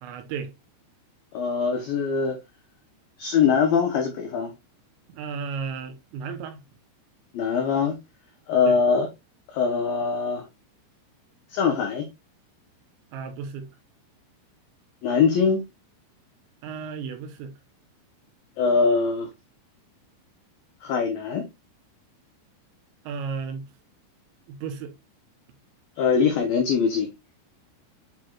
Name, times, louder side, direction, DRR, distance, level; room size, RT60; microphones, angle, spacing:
voice 1, 0.0-0.5 5.1-6.6 8.6-8.8 13.1-13.7 16.6-17.5 23.0-23.7 24.5-24.9, right 5 dB, 75° right, 2.9 m, -34 dB
voice 2, 1.3-2.4 3.2-4.5 7.3-8.0 8.5-9.1 9.5-10.5 11.5-12.1 15.0-15.6 18.6-19.3 20.8-21.5 26.0-27.1, left 5 dB, 80° left, 2.0 m, -22 dB
9.2 x 4.6 x 2.4 m
omnidirectional pair, 5.7 m